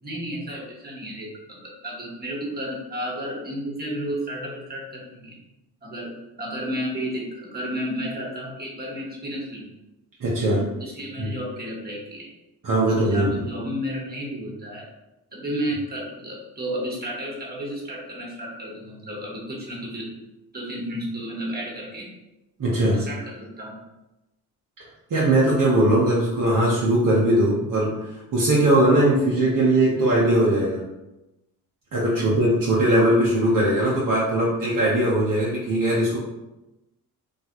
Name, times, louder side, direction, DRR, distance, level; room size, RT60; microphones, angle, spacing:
voice 1, 0.0-5.4 5.8-9.7 10.4-12.3 12.9-14.9 15.3-20.1 20.5-22.1 22.9-23.8 32.1-32.3, equal, 20° right, -3 dB, 1.3 m, -32 dB
voice 2, 10.2-10.6 11.2-11.3 12.6-13.3 22.6-23.0 25.1-30.8 31.9-36.2, right 1 dB, 45° right, -6 dB, 1.0 m, -20 dB
3.2 x 2.4 x 2.9 m, 0.98 s
hypercardioid pair, 55°, 43 cm